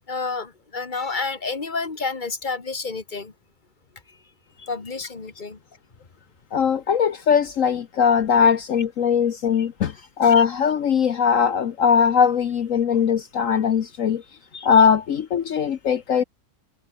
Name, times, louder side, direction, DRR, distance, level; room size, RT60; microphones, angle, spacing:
voice 1, 0.1-3.3 4.7-5.6, left 4 dB, 30° left, 2.0 m, -29 dB
voice 2, 6.5-9.9 10.2-14.2 14.5-16.2, left 7 dB, 60° left, 1.3 m, -20 dB
omnidirectional pair, 1.6 m